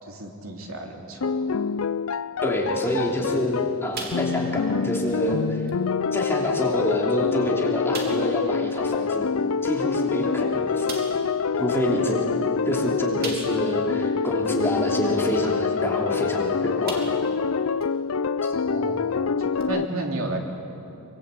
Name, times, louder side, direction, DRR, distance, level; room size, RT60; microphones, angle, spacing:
voice 1, 0.0-1.4 18.5-20.4, right 2 dB, 70° right, 1 dB, 3.2 m, -33 dB
sound 1, 1.2-19.9, left 5 dB, 70° left, 0.5 m, -26 dB
voice 2, 2.4-5.6 6.1-9.3 9.6-10.9 11.6-12.3 12.7-17.0 18.4-18.5, equal, 10° left, -2 dB, 3.1 m, -27 dB
sound 2, 3.9-4.6 4.9-5.1 5.7-5.8 6.6-6.7 7.1-7.2 7.9-8.4 10.0-10.1 10.9-11.3 13.2-13.8 14.3-14.4 16.2-16.4 16.8-17.4 17.8-17.9 19.6-19.7, right 3 dB, 45° right, 3.1 m, -36 dB
24.0 x 23.0 x 8.4 m, 2.9 s
head